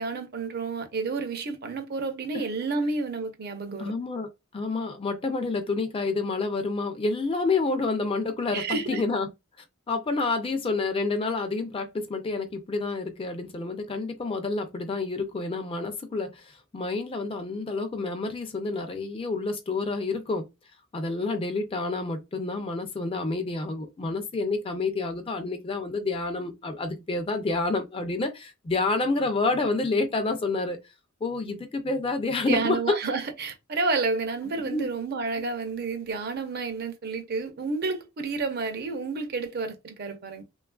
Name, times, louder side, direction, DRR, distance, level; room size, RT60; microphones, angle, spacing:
voice 1, 0.0-3.9 8.5-9.0 32.5-40.4, right 3 dB, 45° right, 0.5 m, -30 dB
voice 2, 3.8-9.3 9.9-20.4 20.9-30.8 31.2-32.9 34.6-34.9, left 3 dB, 25° left, 0.3 m, -28 dB
3.0 x 2.3 x 2.2 m
head